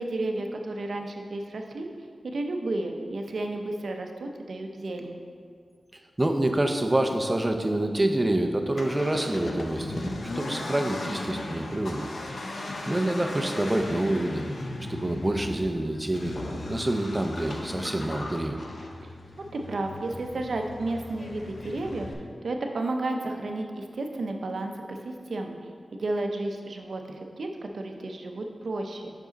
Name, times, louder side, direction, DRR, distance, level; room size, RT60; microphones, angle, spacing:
voice 1, 0.0-1.9 2.2-5.2 19.0-19.1 19.5-22.1 22.4-25.6 25.9-29.1, right 2 dB, 75° right, 4 dB, 0.6 m, -32 dB
voice 2, 6.2-12.1 12.9-14.4 14.9-16.4 16.7-18.6, right 1 dB, 20° right, 5 dB, 0.5 m, -27 dB
Accelerating revving vroom, 8.6-22.1, left 2 dB, 65° left, 0.6 m, -37 dB
6.1 x 4.9 x 3.9 m, 2.1 s
wide cardioid pair, 80°, 0 cm